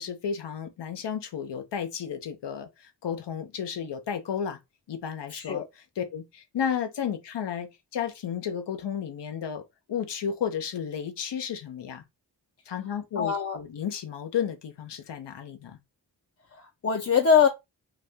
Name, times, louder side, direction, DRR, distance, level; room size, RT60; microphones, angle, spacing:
voice 1, 0.0-4.6 4.9-9.6 9.9-12.0 12.7-15.8, left 8 dB, 85° left, 0.7 m, -33 dB
voice 2, 5.3-5.7 13.2-13.6 16.5-17.5, left 6 dB, 35° left, 0.5 m, -23 dB
2.7 x 2.3 x 3.3 m
cardioid pair, 40°, 41 cm